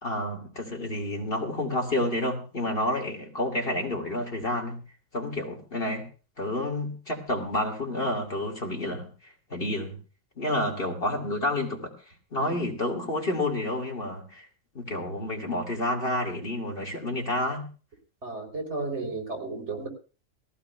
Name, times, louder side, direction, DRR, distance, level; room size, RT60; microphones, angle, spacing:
voice 1, 0.0-4.8 5.1-6.1 6.4-9.1 9.5-10.0 10.4-11.9 12.3-14.5 14.7-17.7, left 1 dB, 45° left, 0 dB, 2.4 m, -29 dB
voice 2, 18.2-19.9, right 3 dB, 55° right, 1 dB, 4.1 m, -34 dB
20.5 x 15.5 x 2.3 m, 0.36 s
omnidirectional pair, 1.4 m